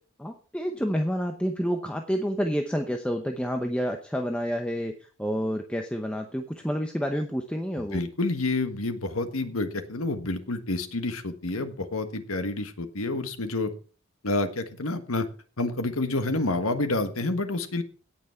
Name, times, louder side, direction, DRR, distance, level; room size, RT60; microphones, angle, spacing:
voice 1, 0.2-4.9 5.2-8.0, equal, 5° left, 4 dB, 0.8 m, -29 dB
voice 2, 7.8-13.7 14.2-15.3 15.6-17.8, left 2 dB, 85° left, 8 dB, 1.5 m, -28 dB
17.0 x 6.1 x 4.5 m, 0.37 s
head